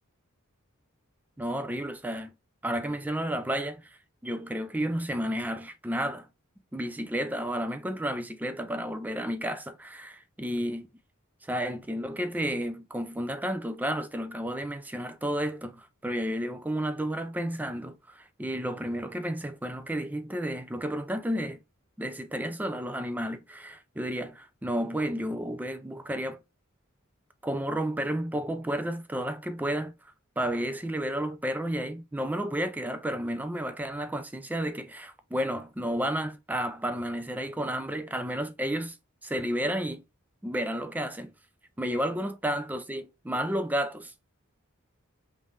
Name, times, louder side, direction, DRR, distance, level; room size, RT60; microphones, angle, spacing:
voice 1, 1.4-2.3 2.6-3.9 4.2-6.3 6.7-10.9 11.4-21.6 22.0-26.4 27.4-29.9 30.4-38.9 39.2-40.0 40.4-41.3 41.8-44.1, equal, 10° right, 0.4 m, -32 dB
3.7 x 2.6 x 3.1 m
head